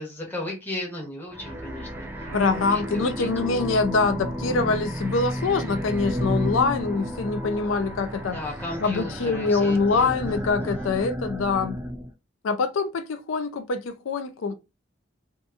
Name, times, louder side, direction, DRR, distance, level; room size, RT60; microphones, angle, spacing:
voice 1, 0.0-2.1 2.7-3.3 8.3-11.1, left 1 dB, 10° left, 0.8 m, -36 dB
sound 1, 1.3-12.1, equal, 10° right, 0.3 m, -32 dB
Explosion, 2.2-4.0, right 3 dB, 85° right, 0.5 m, -43 dB
voice 2, 2.3-8.4 8.8-11.8 12.4-14.5, left 4 dB, 75° left, 0.4 m, -24 dB
2.6 x 2.5 x 2.4 m
head